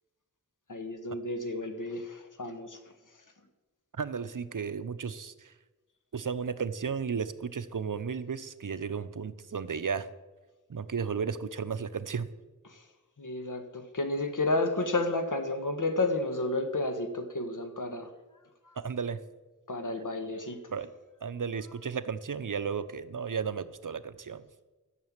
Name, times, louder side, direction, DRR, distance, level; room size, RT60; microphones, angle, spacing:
voice 1, 0.7-2.8 12.6-12.8 13.2-18.1 18.6-18.7 19.7-20.7 21.7-21.8, left 2 dB, 70° left, 6 dB, 1.6 m, -31 dB
voice 2, 4.0-5.5 6.1-10.1 10.7-12.3 18.8-19.2 20.3-20.4 20.7-20.9 21.2-24.4, right 6 dB, 75° right, 13 dB, 0.7 m, -34 dB
12.5 x 6.8 x 8.8 m, 1.2 s
wide cardioid pair, 55°, 32 cm